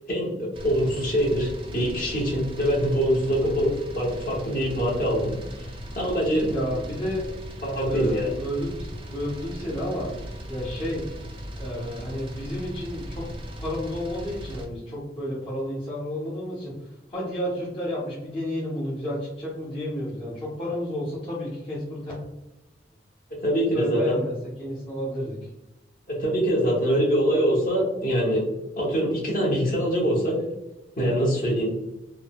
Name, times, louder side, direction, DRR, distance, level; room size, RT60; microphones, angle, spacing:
voice 1, 0.1-5.7 5.9-6.5 7.6-8.3 23.4-24.0 26.1-28.4 28.8-30.4 31.0-31.7, equal, 50° left, -4 dB, 1.1 m, -24 dB
sound 1, 0.5-14.7, equal, 30° right, 0.5 m, -38 dB
voice 2, 6.5-7.3 7.8-10.1 10.5-11.0 11.6-13.3 13.6-16.7 17.1-22.1 23.7-24.3 24.6-25.4, left 1 dB, 30° left, -9 dB, 0.8 m, -31 dB
3.6 x 2.2 x 2.2 m, 0.96 s
head